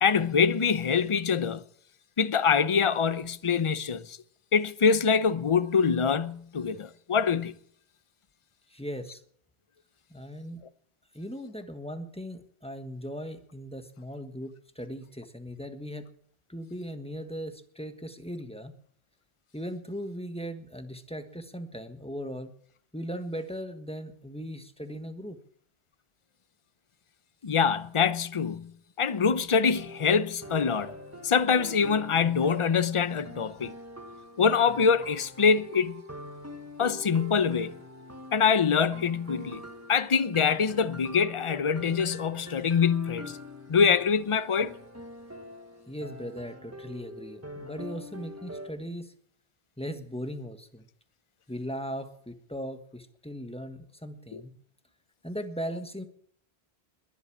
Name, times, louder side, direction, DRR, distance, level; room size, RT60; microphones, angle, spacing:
voice 1, 0.0-1.6 2.2-4.2 4.5-7.5 27.4-28.7 29.0-30.9 31.2-33.7 34.4-36.0 36.8-37.7 38.3-39.6 39.9-43.4 43.7-44.7 54.3-54.4, left 6 dB, 35° left, 0.7 m, -24 dB
voice 2, 8.7-9.2 10.1-10.6 11.1-16.1 16.5-18.8 19.5-22.5 22.9-25.4 45.9-49.1 49.8-50.8 51.5-54.5 55.2-56.0, equal, 5° left, 1.4 m, -38 dB
sound 1, 29.7-48.7, left 1 dB, 15° right, 1.4 m, -44 dB
21.5 x 8.2 x 7.3 m
omnidirectional pair, 1.1 m